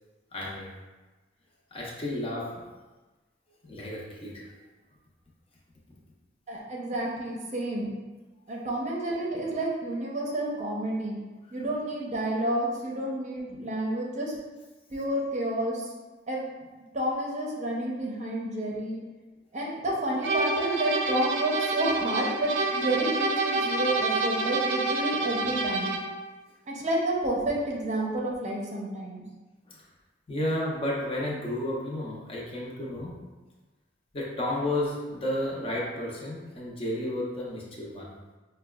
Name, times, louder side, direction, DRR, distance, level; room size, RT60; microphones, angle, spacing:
voice 1, 0.3-0.7 1.7-2.7 3.6-4.5 11.5-11.6 29.7-29.9 30.3-33.2 34.1-38.2, left 1 dB, 30° left, -4 dB, 0.7 m, -32 dB
voice 2, 6.5-7.9 8.5-11.2 11.5-14.3 14.9-15.8 16.3-16.5 16.9-19.0 19.5-25.9 26.7-29.2, right 1 dB, 40° right, -3 dB, 0.6 m, -30 dB
sound 1, 20.2-26.2, right 3 dB, 80° right, 0.4 m, -28 dB
5.2 x 2.2 x 2.3 m, 1.2 s
head